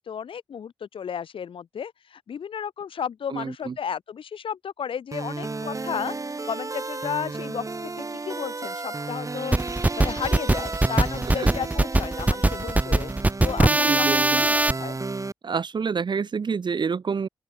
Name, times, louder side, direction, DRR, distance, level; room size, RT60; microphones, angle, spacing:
voice 1, 0.1-6.2 6.4-7.7 8.0-9.6 10.0-13.1 13.4-15.0, left 7 dB, 70° left, 0.9 m, -33 dB
voice 2, 3.3-3.8 11.3-11.5 13.6-14.4 15.4-17.3, right 5 dB, 55° right, 0.9 m, -28 dB
sound 1, 5.1-15.3, right 3 dB, 35° right, 2.7 m, -33 dB
sound 2, 9.5-14.7, right 2 dB, 15° right, 0.6 m, -21 dB
open air
cardioid pair, 45°, 9 cm